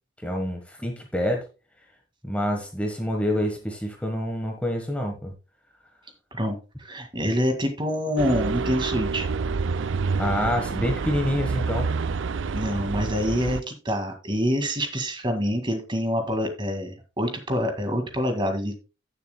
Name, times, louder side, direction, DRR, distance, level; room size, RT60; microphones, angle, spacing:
voice 1, 0.2-1.5 2.2-5.3 10.2-11.9, equal, 5° left, 2 dB, 1.3 m, -27 dB
voice 2, 6.3-9.3 12.5-18.8, equal, 25° right, 5 dB, 2.0 m, -26 dB
sound 1, 8.2-13.6, right 4 dB, 85° right, 0.5 m, -28 dB
16.5 x 7.2 x 2.2 m, 0.29 s
head